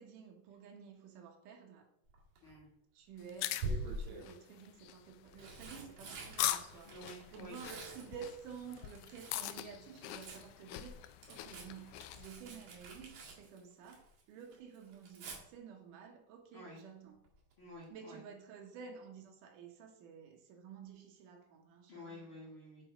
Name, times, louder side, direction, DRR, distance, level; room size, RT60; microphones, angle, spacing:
voice 1, 0.0-1.9 2.9-7.0 7.3-17.2 17.9-22.5, right 7 dB, 70° right, 2.1 m, -52 dB
Tearing, 2.1-2.5 3.6-4.3 5.1-9.6 9.9-14.2 14.5-15.4 17.2-17.5 17.8-17.9, right 2 dB, 50° right, 2.9 m, -46 dB
sound 1, 3.2-12.3, left 14 dB, 80° left, 2.3 m, -42 dB
voice 2, 6.8-7.6 16.5-16.8 17.6-18.2 21.9-22.8, left 1 dB, 40° left, 2.2 m, -51 dB
7.9 x 5.2 x 4.9 m
omnidirectional pair, 4.6 m